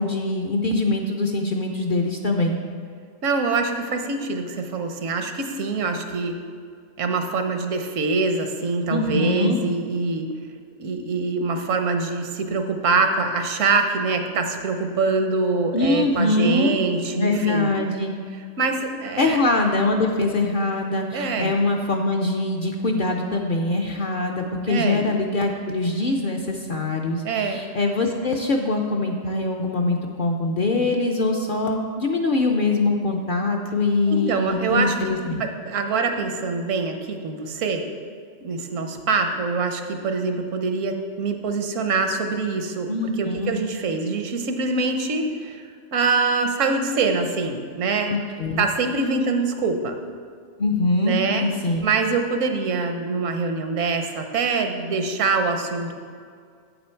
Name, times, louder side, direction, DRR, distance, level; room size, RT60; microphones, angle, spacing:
voice 1, 0.0-2.6 8.9-9.6 15.7-16.7 17.1-18.1 19.2-35.4 42.9-43.6 48.1-48.6 50.6-51.8, left 2 dB, 55° left, 1 dB, 0.6 m, -23 dB
voice 2, 3.2-6.4 7.0-10.3 10.8-17.8 18.6-19.4 21.1-21.5 24.7-25.1 27.2-27.6 34.1-35.0 35.4-37.8 38.4-45.6 45.9-48.1 48.6-50.0 51.0-51.5 51.8-55.9, right 4 dB, 75° right, 6 dB, 1.1 m, -24 dB
8.3 x 6.9 x 4.4 m, 2.2 s
omnidirectional pair, 1.3 m